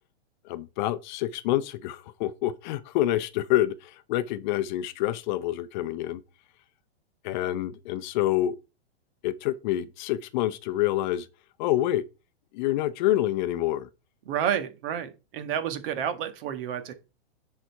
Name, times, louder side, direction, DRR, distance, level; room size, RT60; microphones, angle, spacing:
voice 1, 0.4-6.2 7.2-8.6 9.2-11.3 11.6-12.0 12.5-13.9, left 13 dB, 45° left, 0.7 m, -27 dB
voice 2, 14.3-16.9, right 9 dB, 55° right, 1.7 m, -30 dB
10.0 x 4.3 x 4.6 m
hypercardioid pair, 125°, 32 cm